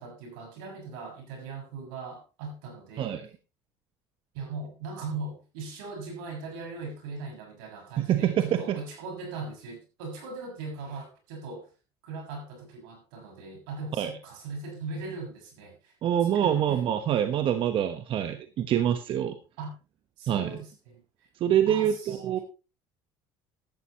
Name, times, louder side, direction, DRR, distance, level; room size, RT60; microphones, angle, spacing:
voice 1, 0.0-3.1 4.3-11.7 12.0-15.9 16.4-16.6 19.6-19.7 20.2-21.0 21.7-22.4, right 3 dB, 90° right, 2 dB, 6.4 m, -39 dB
voice 2, 3.0-3.3 8.0-8.5 14.0-14.1 16.0-19.4 20.3-20.6 21.4-22.4, right 10 dB, 55° right, 8 dB, 1.2 m, -25 dB
15.0 x 12.0 x 3.1 m, 0.30 s
supercardioid pair, 95°, 11 cm